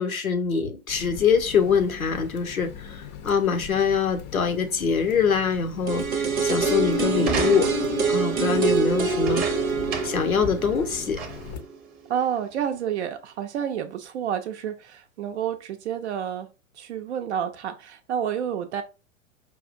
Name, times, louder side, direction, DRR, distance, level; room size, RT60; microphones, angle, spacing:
voice 1, 0.0-7.7 8.1-9.4 10.0-11.2, left 6 dB, 85° left, 7 dB, 0.8 m, -24 dB
Water tap faucet, 0.9-11.6, left 7 dB, 30° left, 0.5 m, -40 dB
sound 1, 5.9-11.8 12.1-12.2, right 4 dB, 90° right, 0.7 m, -25 dB
sound 2, 7.2-8.0 9.1-10.3 10.7-10.8 11.2-11.6 12.4-12.5, right 5 dB, 20° right, 0.8 m, -33 dB
voice 2, 12.1-16.5 16.7-18.8, right 9 dB, 55° right, 7 dB, 0.5 m, -29 dB
4.7 x 2.4 x 2.6 m, 0.30 s
figure-of-eight pair, 95°, 41 cm